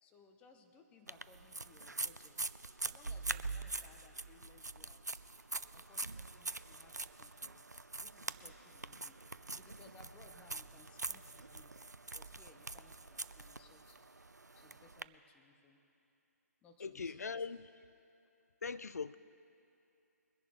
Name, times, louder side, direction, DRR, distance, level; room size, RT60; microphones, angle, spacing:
voice 1, 0.0-5.2 5.7-9.2 9.6-11.7 12.1-14.1 14.5-15.8 16.6-17.4, left 4 dB, 10° left, 0.9 m, -64 dB
sound 1, 1.1-15.0, right 3 dB, 90° right, 0.5 m, -44 dB
voice 2, 16.8-17.7 18.6-19.2, left 5 dB, 70° left, 0.4 m, -41 dB
22.5 x 10.5 x 3.7 m
figure-of-eight pair, 140°, 9 cm